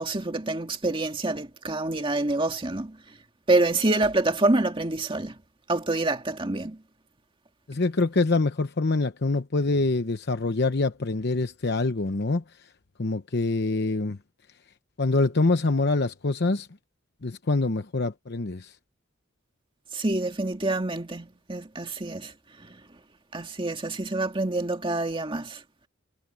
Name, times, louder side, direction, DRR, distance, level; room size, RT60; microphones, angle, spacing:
voice 1, 0.0-3.0 3.5-5.3 5.7-6.8 19.9-22.3 23.3-25.6, right 2 dB, 25° right, 2.0 m, -26 dB
voice 2, 7.7-12.4 13.0-14.2 15.0-16.7 17.2-18.8, left 3 dB, 55° left, 0.9 m, -25 dB
head